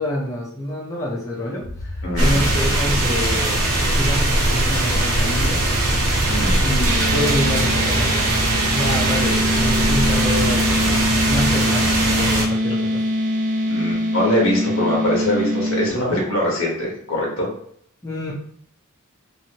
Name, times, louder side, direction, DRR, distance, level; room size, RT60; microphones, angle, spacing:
voice 1, 0.0-3.6 3.9-5.6 6.6-10.6 11.3-11.9 12.2-13.0 18.0-18.3, left 1 dB, 15° left, -6 dB, 0.6 m, -27 dB
sound 1, 1.6-11.6, left 1 dB, 80° left, 1.3 m, -31 dB
voice 2, 2.0-2.4 6.2-6.6 13.7-17.5, left 1 dB, 65° left, -3 dB, 1.2 m, -22 dB
sound 2, 2.2-12.4, right 1 dB, 75° right, 0.8 m, -20 dB
sound 3, 6.8-15.9, equal, 35° right, 0.5 m, -23 dB
2.7 x 2.7 x 2.8 m, 0.66 s
head